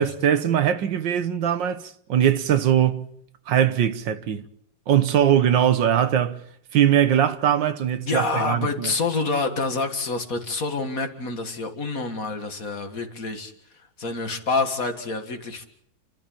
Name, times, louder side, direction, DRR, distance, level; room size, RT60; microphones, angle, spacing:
voice 1, 0.0-3.1 3.5-4.4 4.9-6.4 6.7-8.9, right 10 dB, 75° right, 1.8 m, -21 dB
voice 2, 8.0-15.6, left 3 dB, 45° left, 2.3 m, -27 dB
30.0 x 12.0 x 8.7 m
omnidirectional pair, 2.1 m